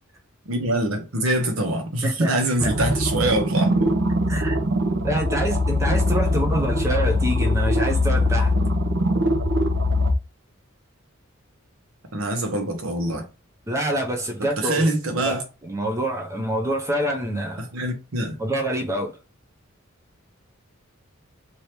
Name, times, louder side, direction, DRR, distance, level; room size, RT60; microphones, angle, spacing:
voice 1, 0.4-3.9 12.1-13.3 14.6-15.4 17.6-18.4, right 1 dB, 90° right, 1.0 m, -24 dB
sound 1, 2.6-10.2, left 1 dB, 60° right, 0.7 m, -22 dB
voice 2, 4.3-4.6 5.0-8.5 13.7-14.9 15.2-15.4 15.6-17.7 18.4-19.2, right 1 dB, 15° right, 0.5 m, -26 dB
3.0 x 2.7 x 3.3 m
head